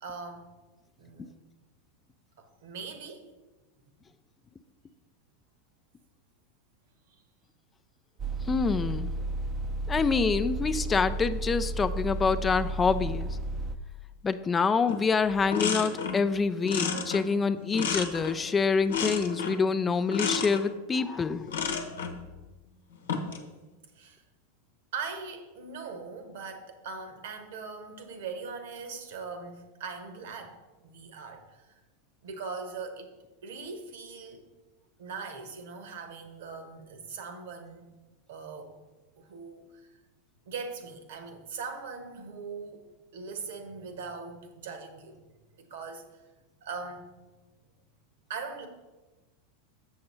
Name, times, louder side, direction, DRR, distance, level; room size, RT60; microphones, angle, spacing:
voice 1, 0.0-0.5 1.0-1.4 2.4-3.3 21.1-21.3 23.9-24.2 24.9-31.7 32.2-33.1 33.4-34.4 35.0-37.9 38.3-38.7 39.2-39.9 40.5-45.2 45.5-46.2 46.6-47.1 48.3-48.7, right 4 dB, 65° right, 8 dB, 1.1 m, -41 dB
sound 1, 8.2-13.8, right 2 dB, 30° right, 0.6 m, -33 dB
voice 2, 8.4-9.1 9.9-13.3 14.2-21.7, left 5 dB, 20° left, 10 dB, 0.4 m, -26 dB
sound 2, 14.9-15.0 15.3-16.3 16.6-18.5 18.9-19.7 20.1-20.6 21.5-22.2 22.9-23.4, left 6 dB, 70° left, 0.9 m, -31 dB
7.6 x 6.5 x 4.3 m, 1.2 s
figure-of-eight pair, 90°, 0 cm